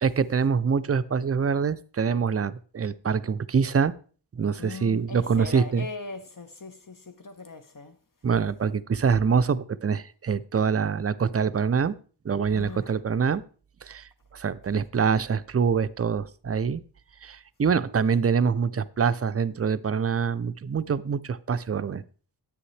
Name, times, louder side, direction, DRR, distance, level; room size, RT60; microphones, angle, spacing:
voice 1, 0.0-3.9 4.3-5.9 8.2-12.0 12.2-13.4 13.8-16.8 17.2-22.0, right 6 dB, 35° right, 0.4 m, -25 dB
voice 2, 4.6-8.0 12.5-12.9, left 4 dB, 50° left, 0.9 m, -40 dB
9.9 x 8.5 x 3.2 m
wide cardioid pair, 65°, 41 cm